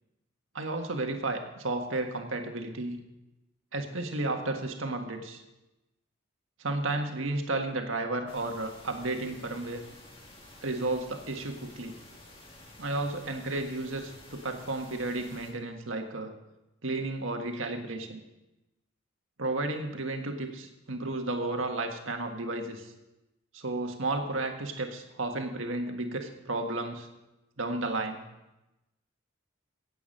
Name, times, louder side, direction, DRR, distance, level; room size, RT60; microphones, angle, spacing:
voice 1, 0.5-3.0 3.7-5.4 6.6-9.8 10.6-11.9 12.8-16.3 16.8-18.2 19.4-22.9 23.5-27.1 27.6-28.2, right 2 dB, 90° right, 4 dB, 1.6 m, -33 dB
sound 1, 8.3-15.5, left 1 dB, 30° left, 2.3 m, -51 dB
16.5 x 8.4 x 5.5 m, 0.98 s
head